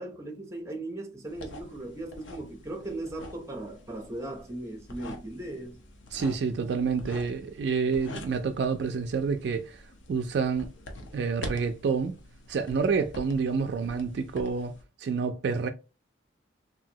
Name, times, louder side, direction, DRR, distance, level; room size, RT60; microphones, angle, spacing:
voice 1, 0.0-5.8, right 2 dB, 15° right, 0.6 m, -38 dB
sound 1, 1.3-14.8, left 1 dB, 80° left, 0.7 m, -46 dB
voice 2, 6.1-9.8 10.1-10.7 11.1-12.2 12.5-14.7 15.0-15.7, right 5 dB, 60° right, 0.3 m, -28 dB
2.8 x 2.6 x 2.7 m
head